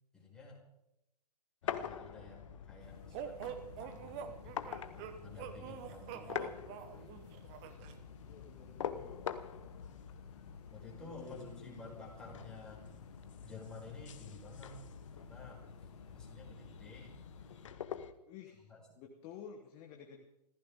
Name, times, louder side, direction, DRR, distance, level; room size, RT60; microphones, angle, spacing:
voice 1, 0.1-0.6 1.6-6.6 7.0-7.1 10.7-12.8 13.4-14.8 15.2-17.2 18.7-19.0, left 3 dB, 5° left, -4 dB, 4.8 m, -52 dB
sound 1, 1.6-18.1, left 8 dB, 50° left, 1.1 m, -46 dB
sound 2, 2.8-17.7, left 3 dB, 65° left, 2.9 m, -57 dB
sound 3, 3.1-8.0, right 9 dB, 25° right, 1.2 m, -46 dB
voice 2, 8.2-9.2 11.0-11.7 18.3-18.7 19.0-20.2, left 8 dB, 25° left, 3 dB, 1.4 m, -52 dB
25.0 x 15.5 x 3.7 m, 0.87 s
figure-of-eight pair, 125°, 21 cm